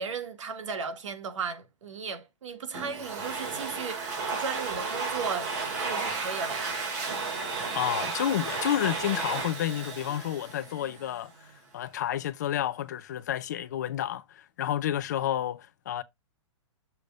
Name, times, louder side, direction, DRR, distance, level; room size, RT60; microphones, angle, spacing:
voice 1, 0.0-6.8, right 5 dB, 80° right, 1.4 m, -36 dB
Domestic sounds home sounds, 2.7-11.2, right 4 dB, 40° right, 2.4 m, -33 dB
voice 2, 7.7-11.3 11.7-16.0, left 11 dB, 35° left, 0.4 m, -30 dB
6.8 x 3.3 x 5.0 m
hypercardioid pair, 175°, 16 cm